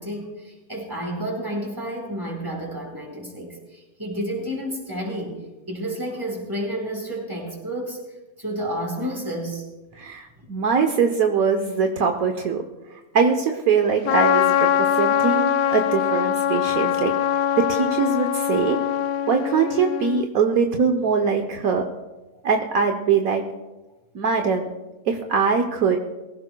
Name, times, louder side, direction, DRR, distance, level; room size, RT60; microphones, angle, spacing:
voice 1, 0.0-5.4 5.7-8.0 8.4-9.7, right 1 dB, 15° right, -2 dB, 4.2 m, -30 dB
voice 2, 9.9-12.6 12.9-17.1 17.6-18.8 19.3-21.9 22.4-23.4 24.1-24.7 25.0-26.0, right 5 dB, 70° right, 4 dB, 1.3 m, -22 dB
Trumpet, 14.0-20.3, left 10 dB, 75° left, 1.0 m, -22 dB
23.0 x 16.0 x 2.2 m, 1.1 s
omnidirectional pair, 1.6 m